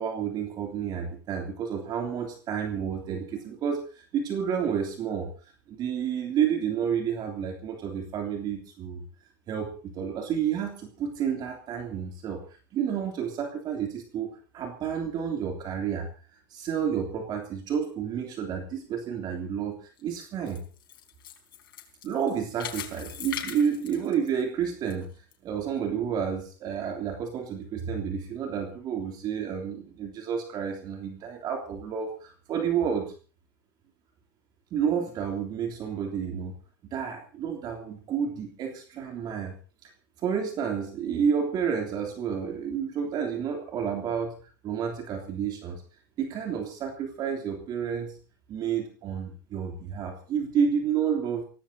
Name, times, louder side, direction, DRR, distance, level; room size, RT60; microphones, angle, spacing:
voice 1, 0.0-5.3 5.7-9.0 9.5-12.4 12.7-16.1 16.5-20.6 22.0-25.1 25.4-33.1 34.7-36.5 36.9-39.5 39.8-39.9 40.2-44.3 44.6-45.8 46.2-48.2 48.5-51.4, right 7 dB, 40° right, 2 dB, 3.2 m, -30 dB
sound 1, 20.0-24.9 25.3-25.4 26.0-26.1, left 11 dB, 85° left, 4.4 m, -40 dB
25.0 x 18.0 x 2.9 m, 0.37 s
supercardioid pair, 125°, 11 cm